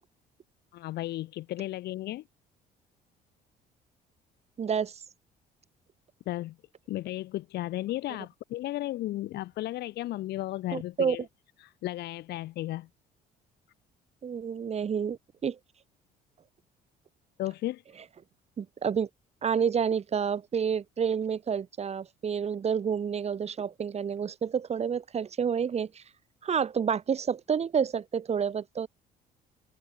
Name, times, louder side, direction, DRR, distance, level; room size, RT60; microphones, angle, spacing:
voice 1, 0.7-2.2 6.3-6.6 6.9-11.3 11.6-12.9 17.4-17.8, left 15 dB, 75° left, 5.3 m, -34 dB
voice 2, 4.6-4.9 10.7-11.2 14.2-15.6 18.6-19.1 19.4-26.0 26.4-28.9, right 7 dB, 40° right, 3.1 m, -29 dB
cardioid pair, 110°, 17 cm